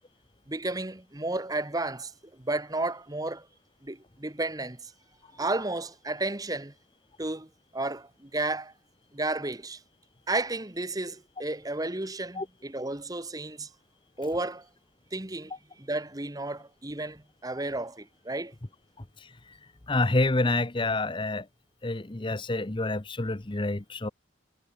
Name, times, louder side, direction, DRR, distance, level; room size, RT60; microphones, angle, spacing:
voice 1, 0.5-2.1 2.4-3.5 3.8-4.9 5.4-6.7 7.2-7.5 7.7-8.7 9.1-9.8 10.3-13.7 14.2-14.7 15.1-15.5 15.8-18.5, right 2 dB, 20° right, 1.2 m, -32 dB
voice 2, 19.9-21.5 21.8-24.1, left 2 dB, 25° left, 0.9 m, -27 dB
head